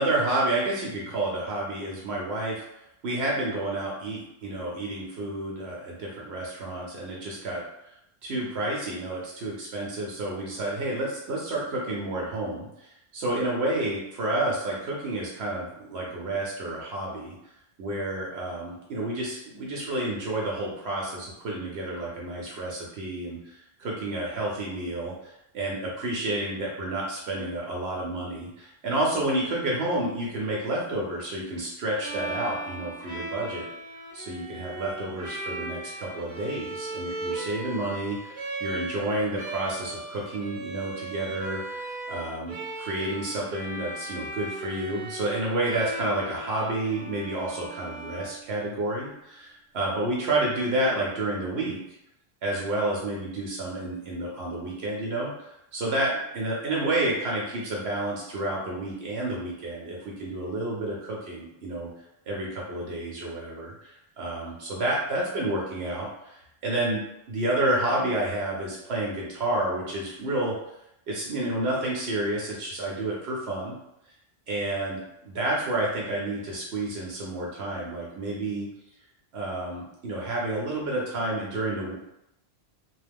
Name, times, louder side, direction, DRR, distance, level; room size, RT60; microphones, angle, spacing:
voice 1, 0.0-2.7 3.0-7.6 8.2-17.3 17.8-33.7 34.1-51.8 52.4-61.9 62.3-67.0 67.3-70.5 71.1-73.8 74.5-78.7 79.3-82.0, right 1 dB, 75° right, -3 dB, 0.9 m, -30 dB
Bowed string instrument, 32.0-48.9, right 2 dB, 50° right, 0.7 m, -37 dB
3.0 x 2.0 x 3.4 m, 0.83 s
omnidirectional pair, 1.1 m